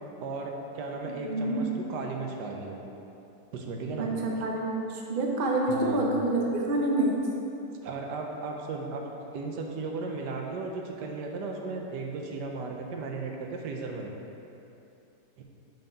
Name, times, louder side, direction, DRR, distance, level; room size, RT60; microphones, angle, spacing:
voice 1, 0.2-2.8 3.5-4.1 5.7-6.1 7.8-9.0 9.3-14.1 15.4-15.5, right 3 dB, 80° right, 1 dB, 1.3 m, -35 dB
voice 2, 1.1-1.6 4.0-7.1, right 2 dB, 40° right, -1 dB, 0.8 m, -27 dB
6.3 x 4.5 x 5.6 m, 2.8 s
omnidirectional pair, 1.8 m